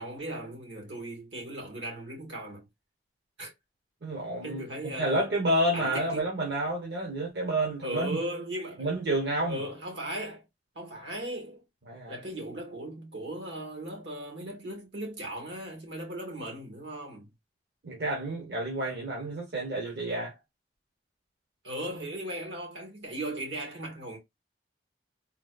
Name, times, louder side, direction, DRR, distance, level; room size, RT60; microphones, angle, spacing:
voice 1, 0.0-2.7 3.4-3.5 4.4-5.3 5.7-6.3 7.8-8.9 9.5-10.4 10.7-11.6 12.1-17.3 21.6-24.2, right 1 dB, 90° right, 1.6 m, -37 dB
voice 2, 4.0-4.6 5.0-8.2 8.8-9.6 11.9-12.2 17.8-20.3, right 1 dB, 70° right, 1.0 m, -29 dB
3.9 x 2.3 x 2.4 m
head